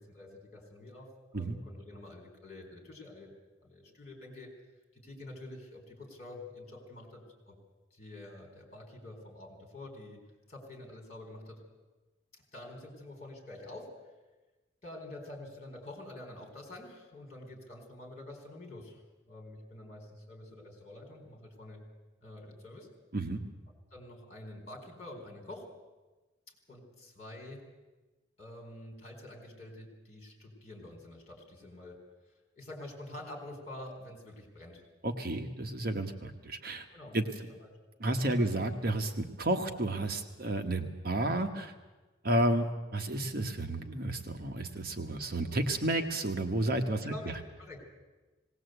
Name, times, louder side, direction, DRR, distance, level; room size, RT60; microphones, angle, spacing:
voice 1, 0.0-3.3 3.6-4.5 4.9-7.6 7.9-10.2 10.5-11.6 12.3-13.9 14.8-21.8 22.2-22.9 23.7-25.6 26.5-27.6 28.4-32.0 32.6-34.8 36.9-37.7 38.0-38.5 45.1-45.3 47.0-47.8, left 1 dB, 35° left, 2 dB, 4.4 m, -47 dB
voice 2, 35.0-36.8 37.1-37.2 38.0-41.7 42.2-47.1, right 1 dB, 50° right, 5 dB, 1.2 m, -31 dB
19.0 x 18.5 x 8.0 m, 1.2 s
head